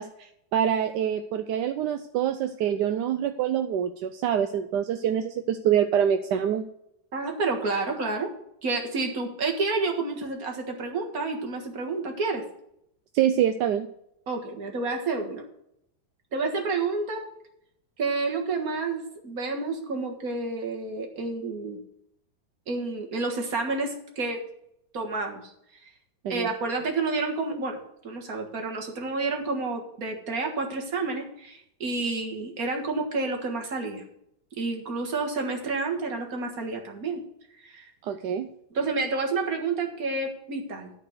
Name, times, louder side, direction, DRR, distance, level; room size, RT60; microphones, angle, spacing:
voice 1, 0.0-6.6 13.1-13.9 26.2-26.5 38.0-38.5, right 9 dB, 70° right, 8 dB, 1.1 m, -25 dB
voice 2, 7.1-8.3 8.6-12.4 14.3-15.4 16.3-17.2 18.0-21.8 22.7-24.4 24.9-25.4 26.3-27.8 28.0-34.0 34.6-37.2 37.6-37.9 38.7-40.9, right 3 dB, 50° right, 2 dB, 2.0 m, -29 dB
12.5 x 4.4 x 8.1 m, 0.76 s
omnidirectional pair, 2.1 m